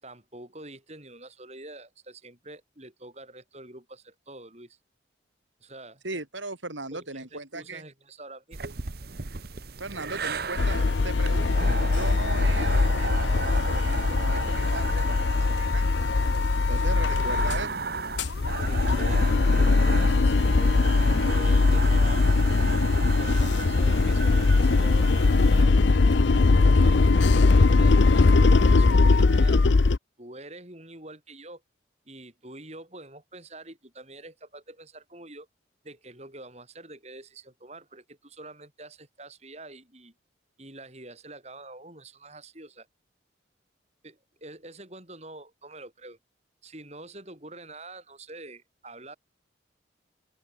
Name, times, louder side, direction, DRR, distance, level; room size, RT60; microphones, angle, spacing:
voice 1, 0.0-4.8 5.6-6.0 6.9-8.6 18.6-22.3 23.2-26.4 26.7-29.9 30.2-31.6 32.1-35.5 35.8-40.1 40.6-42.9 44.0-46.2 46.6-49.2, right 2 dB, 35° right, 6.8 m, -46 dB
voice 2, 6.0-7.8 9.8-15.9 16.7-17.7, right 2 dB, 80° right, 7.4 m, -38 dB
sound 1, 8.5-25.6, right 4 dB, 55° right, 1.0 m, -35 dB
sound 2, 10.6-17.7 18.0-30.0, left 3 dB, 70° left, 0.6 m, -21 dB
open air
head